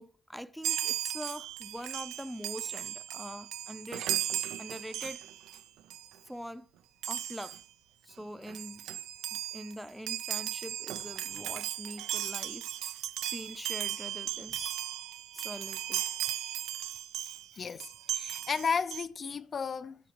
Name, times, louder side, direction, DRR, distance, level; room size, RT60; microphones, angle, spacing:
voice 1, 0.0-4.1 4.6-5.3 6.3-6.7 7.1-7.6 8.1-8.9 9.3-13.0 13.3-14.8 15.3-16.1 17.2-17.8, equal, ahead, 0.6 m, -44 dB
Chime, 0.6-5.6 5.9-6.1 7.0-7.6 8.2-8.3 8.5-17.5 17.8-19.0, right 12 dB, 90° right, 0.5 m, -36 dB
voice 2, 17.6-17.9 18.1-20.0, left 6 dB, 45° left, 0.4 m, -33 dB
12.5 x 11.5 x 3.0 m
cardioid pair, 90°, 0 cm